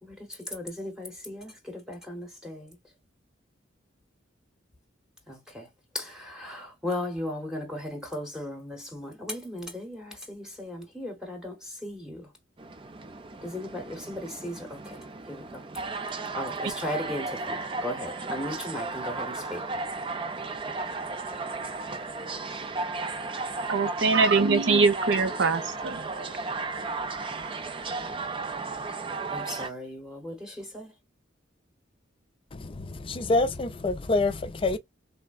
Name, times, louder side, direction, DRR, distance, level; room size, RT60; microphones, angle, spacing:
voice 1, 0.0-2.8 5.3-5.7 5.9-12.3 13.4-15.6 16.0-19.7 28.9-29.0 29.3-30.9, left 1 dB, 5° right, 0.9 m, -37 dB
sound 1, 12.6-29.7, right 3 dB, 25° right, 0.4 m, -34 dB
voice 2, 23.7-26.1, right 4 dB, 70° right, 0.6 m, -23 dB
voice 3, 32.5-34.8, left 2 dB, 30° left, 0.4 m, -27 dB
3.4 x 2.0 x 2.3 m
head